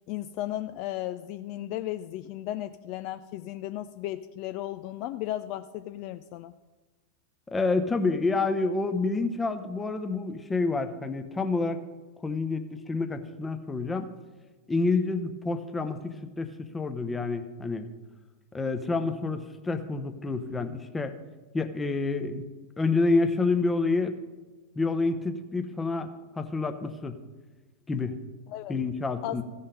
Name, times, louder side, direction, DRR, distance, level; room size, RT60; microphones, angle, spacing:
voice 1, 0.1-6.5 28.5-28.8 29.2-29.4, left 14 dB, 45° left, 11 dB, 0.3 m, -35 dB
voice 2, 7.5-11.8 12.2-14.1 14.7-17.9 18.5-21.2 21.5-22.4 22.8-24.1 24.7-26.1 26.4-27.2 27.9-28.2 28.7-29.4, left 3 dB, 10° left, 8 dB, 0.8 m, -28 dB
15.5 x 5.5 x 5.2 m, 1.2 s
figure-of-eight pair, 90°, 0 cm